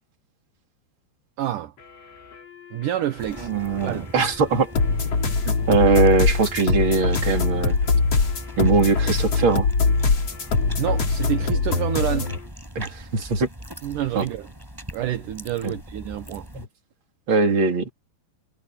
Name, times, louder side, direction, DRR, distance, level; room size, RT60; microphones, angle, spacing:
voice 1, 1.4-1.7 2.7-3.5 3.8-4.1 10.8-12.3 13.8-14.5 14.9-16.5, right 12 dB, 65° right, 2.1 m, -28 dB
sound 1, 1.8-12.5, left 7 dB, 80° left, 9.0 m, -46 dB
sound 2, 3.2-16.7, equal, 5° right, 6.5 m, -41 dB
voice 2, 3.4-4.7 5.4-7.8 8.6-9.7 12.1-12.2 12.7-13.5 14.1-14.2 15.6-15.7 16.5-16.6 17.3-17.9, right 4 dB, 30° right, 3.1 m, -21 dB
sound 3, 4.7-12.4, left 4 dB, 35° left, 3.7 m, -22 dB
omnidirectional pair, 5.2 m